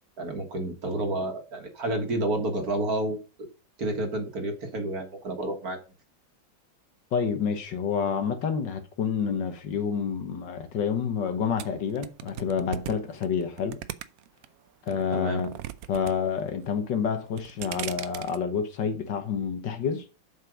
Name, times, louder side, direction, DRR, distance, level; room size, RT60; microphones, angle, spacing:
voice 1, 0.2-3.2 3.8-5.8 15.1-15.4, right 1 dB, 50° right, 1.9 m, -30 dB
voice 2, 7.1-13.8 14.9-15.5 15.9-20.1, left 6 dB, 65° left, 1.8 m, -28 dB
sound 1, 11.6-14.5 14.9-16.1 16.4-16.9 17.3-18.4, right 12 dB, 75° right, 0.8 m, -38 dB
7.6 x 5.6 x 4.9 m
omnidirectional pair, 2.1 m